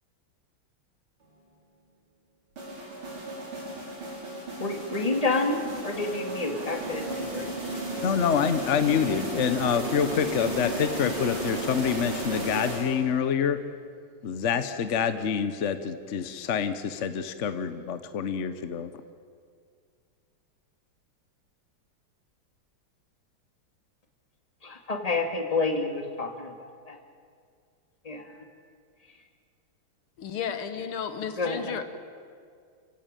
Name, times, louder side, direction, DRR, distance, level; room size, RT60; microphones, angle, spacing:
sound 1, 2.6-13.2, right 1 dB, 75° right, 6.2 m, -34 dB
voice 1, 4.6-5.6 5.8-7.5 24.6-27.0 28.0-28.4 31.4-31.8, left 3 dB, 15° left, 3 dB, 2.3 m, -29 dB
voice 2, 8.0-13.6 14.2-18.9, left 7 dB, 55° left, 11 dB, 0.8 m, -27 dB
voice 3, 30.2-31.8, left 7 dB, 80° left, 10 dB, 2.2 m, -33 dB
28.0 x 16.0 x 9.0 m, 2.2 s
omnidirectional pair, 2.4 m